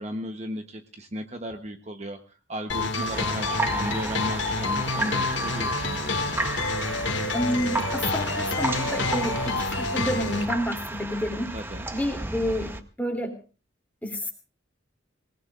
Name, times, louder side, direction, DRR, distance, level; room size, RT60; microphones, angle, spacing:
voice 1, 0.0-6.0 11.5-11.9, equal, 35° right, 5 dB, 1.0 m, -35 dB
sound 1, 2.7-10.4, left 3 dB, 75° left, 2.1 m, -28 dB
sound 2, 3.1-12.8, right 1 dB, 10° right, 0.9 m, -33 dB
voice 2, 7.3-11.5 11.9-13.4 14.0-14.3, equal, 10° left, 2 dB, 3.0 m, -29 dB
26.5 x 18.5 x 2.5 m, 0.34 s
head